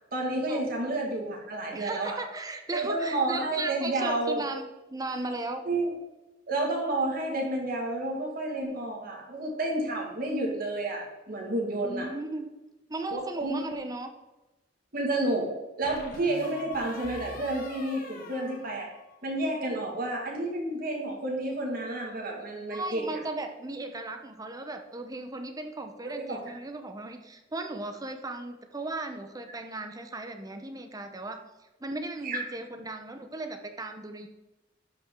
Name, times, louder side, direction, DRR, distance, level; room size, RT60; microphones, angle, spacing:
voice 1, 0.1-2.2 2.7-4.4 5.7-5.9 6.5-12.1 13.1-13.6 14.9-15.5 15.8-18.9 19.2-23.1 26.2-26.4 32.2-32.4, right 2 dB, 50° right, -1 dB, 2.2 m, -30 dB
voice 2, 1.7-5.6 11.8-12.5 12.9-14.1 22.7-31.4 31.8-34.3, right 2 dB, 20° right, 6 dB, 0.8 m, -36 dB
sound 1, 13.1-13.9 15.8-19.5, left 3 dB, 50° left, 1.3 m, -45 dB
11.5 x 5.6 x 3.8 m, 1.0 s
head